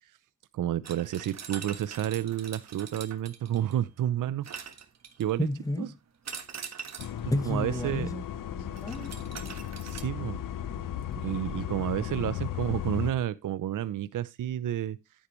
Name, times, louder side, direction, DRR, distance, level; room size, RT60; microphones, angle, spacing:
voice 1, 0.5-4.7 5.2-5.5 5.8-5.9 7.5-8.1 9.8-10.4 11.2-15.0, right 11 dB, 70° right, 0.7 m, -30 dB
sound 1, 0.8-3.8 4.4-5.4 6.3-7.2 8.8-10.0, right 7 dB, 55° right, 1.6 m, -43 dB
voice 2, 5.4-6.0 7.3-8.2 8.6-9.3, left 1 dB, 10° left, 1.6 m, -32 dB
sound 2, 7.0-13.1, left 10 dB, 80° left, 1.0 m, -35 dB
10.0 x 9.9 x 3.1 m
cardioid pair, 90°, 32 cm